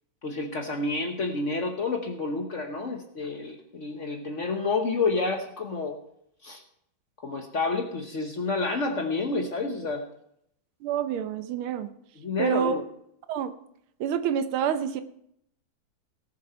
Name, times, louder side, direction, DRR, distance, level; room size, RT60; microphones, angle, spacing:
voice 1, 0.2-6.0 6.4-6.6 7.2-10.0 12.2-12.8, left 3 dB, 50° left, 3 dB, 1.0 m, -29 dB
voice 2, 10.8-11.9 12.4-12.8 13.3-13.5 14.0-15.0, right 8 dB, 85° right, 11 dB, 1.6 m, -27 dB
18.0 x 7.0 x 4.3 m, 0.73 s
omnidirectional pair, 2.3 m